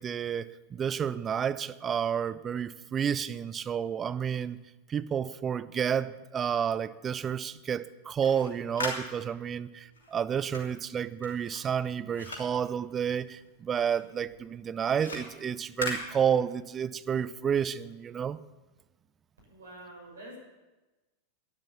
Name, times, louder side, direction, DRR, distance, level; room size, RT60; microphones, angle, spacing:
voice 1, 0.0-4.6 4.9-18.4, right 8 dB, 25° right, 15 dB, 0.5 m, -30 dB
sound 1, 8.0-13.6 13.9-16.8, left 2 dB, 70° left, 3.1 m, -41 dB
voice 2, 19.5-20.4, right 1 dB, 70° right, -1 dB, 6.6 m, -46 dB
12.5 x 10.5 x 7.2 m, 1.1 s
figure-of-eight pair, 90°, 0 cm